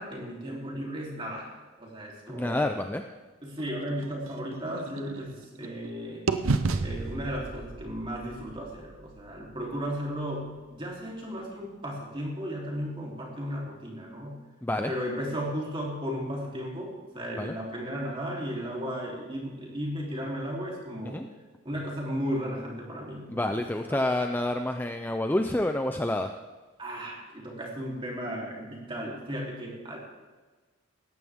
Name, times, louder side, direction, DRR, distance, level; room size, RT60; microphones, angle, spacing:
voice 1, 0.0-1.5 1.8-2.7 3.4-6.3 6.8-14.4 14.9-21.2 21.6-23.6 23.9-24.0 26.8-30.0, equal, 25° right, -3 dB, 3.4 m, -35 dB
voice 2, 2.3-3.0 14.6-14.9 17.4-17.6 21.1-21.3 23.3-26.4, left 1 dB, 10° left, 5 dB, 0.5 m, -28 dB
sound 1, 3.6-5.9 6.3-10.2, right 3 dB, 80° right, 0.8 m, -33 dB
18.0 x 14.5 x 3.6 m, 1.3 s
head